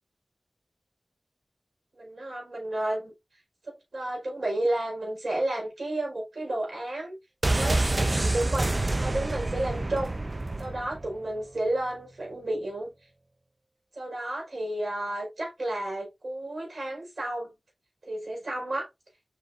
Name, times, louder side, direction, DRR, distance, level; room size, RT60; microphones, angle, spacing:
voice 1, 1.9-3.1 3.6-7.2 7.5-10.2 10.6-12.9 13.9-17.6 18.1-18.9, right 1 dB, 90° right, 4.9 m, -32 dB
sound 1, 7.4-11.2 11.5-11.6, right 2 dB, 40° right, 0.5 m, -27 dB
7.1 x 5.7 x 2.7 m
wide cardioid pair, 55°, 0 cm